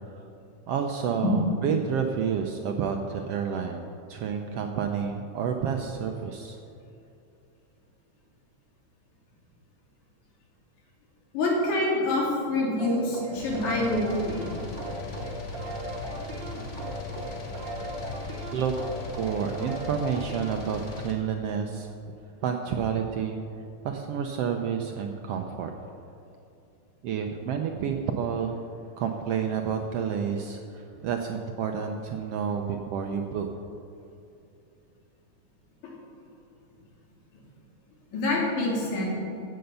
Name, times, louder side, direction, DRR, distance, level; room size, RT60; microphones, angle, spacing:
voice 1, 0.7-3.8 4.1-6.6 18.5-18.7 19.2-21.9 22.4-23.4 23.8-25.7 27.0-28.6 29.0-33.5, right 7 dB, 75° right, 4 dB, 1.4 m, -29 dB
voice 2, 11.3-14.5 38.1-39.0, left 2 dB, 80° left, -3 dB, 4.1 m, -26 dB
sound 1, 12.8-20.8, right 2 dB, 45° right, 1.6 m, -38 dB
sound 2, 13.3-21.1, left 4 dB, 50° left, 0.8 m, -39 dB
15.5 x 6.7 x 6.8 m, 2.7 s
omnidirectional pair, 3.4 m